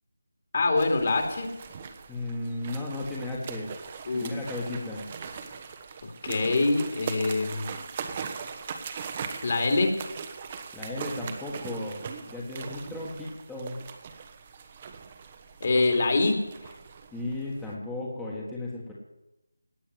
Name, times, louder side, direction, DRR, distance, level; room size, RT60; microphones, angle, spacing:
voice 1, 0.5-1.5 4.0-4.3 6.0-7.7 9.4-9.9 15.6-16.7, left 3 dB, 45° left, 3 dB, 2.8 m, -25 dB
sound 1, 0.8-17.8, right 6 dB, 25° right, 1.1 m, -40 dB
voice 2, 2.1-3.8 4.1-5.1 10.7-13.9 17.1-18.9, left 2 dB, 5° left, -4 dB, 1.5 m, -35 dB
17.5 x 6.2 x 9.4 m, 0.96 s
figure-of-eight pair, 165°, 0 cm